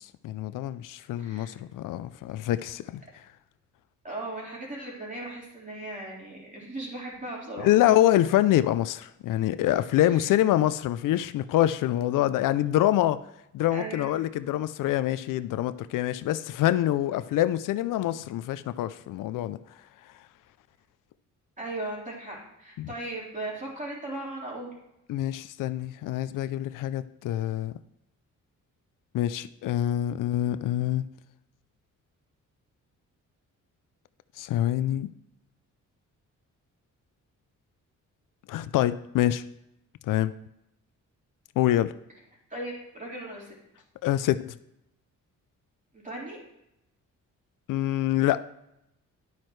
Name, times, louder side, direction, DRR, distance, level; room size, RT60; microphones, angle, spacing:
voice 1, 0.0-3.0 7.6-13.2 13.5-19.6 22.8-22.9 25.1-27.7 29.1-31.0 34.4-35.1 38.5-39.4 40.1-40.3 41.6-41.9 44.0-44.5 47.7-48.4, left 13 dB, 85° left, 14 dB, 0.5 m, -25 dB
voice 2, 1.2-1.5 4.0-7.7 10.1-10.4 13.7-14.2 21.6-24.8 42.5-43.5 45.9-46.4, right 2 dB, 25° right, -4 dB, 4.0 m, -37 dB
11.0 x 8.8 x 3.2 m, 0.84 s
cardioid pair, 100°, 31 cm